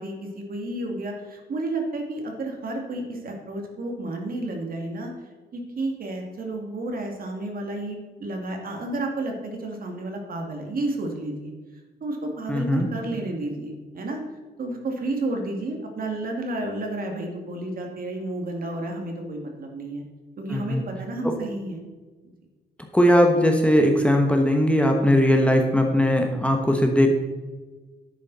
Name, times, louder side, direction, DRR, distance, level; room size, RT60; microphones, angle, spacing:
voice 1, 0.0-5.1 5.5-11.5 12.0-14.2 14.6-20.0 20.4-21.8, right 2 dB, 55° right, 2 dB, 2.3 m, -31 dB
voice 2, 12.5-12.9 20.5-20.8 21.2-21.3 22.9-27.1, equal, 5° left, 2 dB, 1.2 m, -19 dB
11.0 x 8.7 x 4.1 m, 1.3 s
cardioid pair, 115°, 18 cm